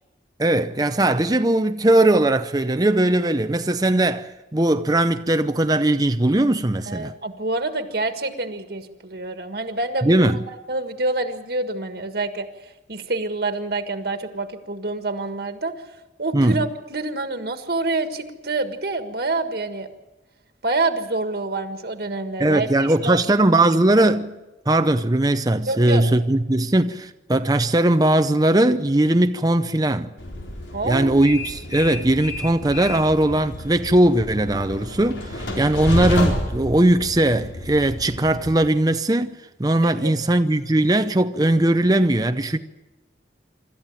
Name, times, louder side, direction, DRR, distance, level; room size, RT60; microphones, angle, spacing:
voice 1, 0.4-7.1 10.0-10.4 16.3-16.6 22.4-24.4 24.7-30.1 30.8-42.6, right 1 dB, 20° right, 0.6 m, -19 dB
voice 2, 6.9-12.5 12.9-15.7 16.2-19.9 20.6-23.2 23.6-23.8 25.7-26.0 30.7-31.2 39.8-40.1, right 2 dB, 55° right, 1.6 m, -27 dB
Train, 30.2-38.5, left 1 dB, 90° left, 4.0 m, -30 dB
26.0 x 13.5 x 9.0 m
head